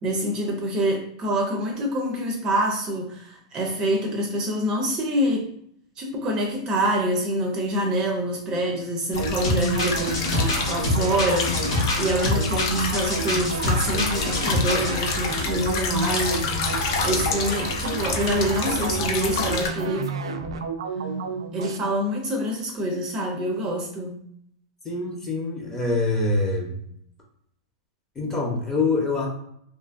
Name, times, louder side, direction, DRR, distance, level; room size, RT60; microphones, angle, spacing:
voice 1, 0.0-5.5 6.0-16.5 17.0-20.1 21.5-24.2, right 1 dB, 30° right, 2 dB, 0.4 m, -26 dB
sound 1, 9.1-19.7, left 4 dB, 55° left, 0.5 m, -28 dB
sound 2, 9.2-21.8, right 5 dB, 90° right, 0.3 m, -31 dB
sound 3, 9.4-14.9, left 2 dB, 70° left, 0.9 m, -26 dB
voice 2, 24.8-26.8 28.2-29.3, left 3 dB, 15° left, -1 dB, 0.7 m, -25 dB
2.6 x 2.4 x 2.4 m, 0.71 s
hypercardioid pair, 135°, 3 cm